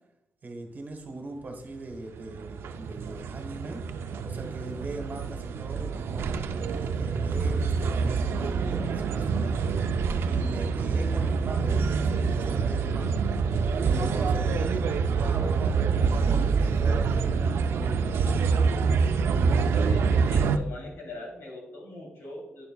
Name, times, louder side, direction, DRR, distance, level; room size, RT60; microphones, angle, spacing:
voice 1, 0.4-3.8 4.2-13.3 13.9-18.4, right 2 dB, 50° right, 4 dB, 1.3 m, -40 dB
sound 1, 1.9-20.6, right 5 dB, 90° right, 0.4 m, -26 dB
voice 2, 19.8-22.6, left 1 dB, 90° left, -1 dB, 2.8 m, -41 dB
9.2 x 6.8 x 2.3 m, 0.82 s
wide cardioid pair, 105°, 4 cm